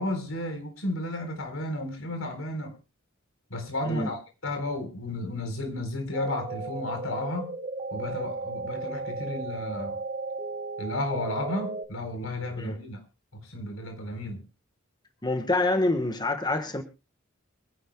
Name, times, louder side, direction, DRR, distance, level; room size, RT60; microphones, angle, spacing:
voice 1, 0.0-2.8 3.5-7.6 7.9-10.0 10.8-13.0 13.3-14.4, left 1 dB, 85° left, 4.0 m, -33 dB
sound 1, 6.1-11.8, right 3 dB, 35° right, 1.9 m, -35 dB
voice 2, 15.2-16.8, left 2 dB, 20° left, 1.3 m, -26 dB
25.0 x 10.5 x 2.2 m
head